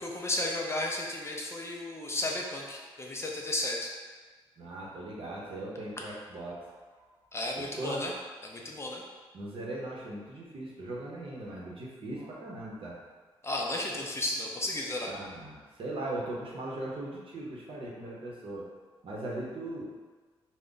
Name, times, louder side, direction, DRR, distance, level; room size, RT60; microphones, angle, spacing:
voice 1, 0.0-3.9 7.3-8.1 8.4-9.0 13.4-15.1, left 1 dB, 25° left, -1 dB, 0.5 m, -33 dB
voice 2, 4.6-7.0 7.6-8.0 9.3-13.0 15.1-18.7 19.0-19.9, right 1 dB, 60° right, -4 dB, 0.7 m, -39 dB
2.5 x 2.1 x 3.7 m, 1.4 s
cardioid pair, 75°, 10 cm